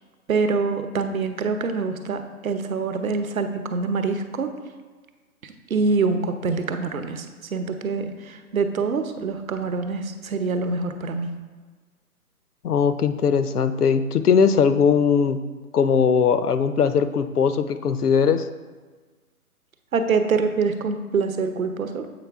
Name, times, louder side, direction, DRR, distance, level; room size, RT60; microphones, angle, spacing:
voice 1, 0.3-4.5 5.4-11.3 19.9-22.1, right 4 dB, 65° right, 8 dB, 0.9 m, -25 dB
voice 2, 12.6-15.4 15.7-18.5, left 6 dB, 75° left, 11 dB, 0.7 m, -20 dB
7.7 x 5.0 x 3.5 m, 1.4 s
figure-of-eight pair, 145°, 46 cm